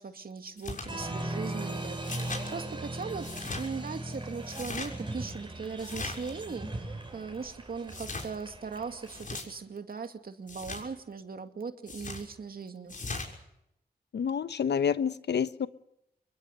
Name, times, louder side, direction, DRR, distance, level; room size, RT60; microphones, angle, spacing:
voice 1, 0.0-3.3 3.6-13.0, right 5 dB, 60° right, 2.4 m, -39 dB
sound 1, 0.6-0.9 2.0-2.5 3.2-3.6 4.4-4.9 5.8-6.3 7.9-8.3 9.1-9.4 10.5-10.8 11.9-12.2 12.9-13.3, left 3 dB, 50° left, 6.6 m, -38 dB
Applause, 0.8-9.2, right 1 dB, 30° right, 6.2 m, -39 dB
voice 2, 14.1-15.7, left 7 dB, 80° left, 1.0 m, -28 dB
27.5 x 22.5 x 6.8 m
cardioid pair, 75°, 17 cm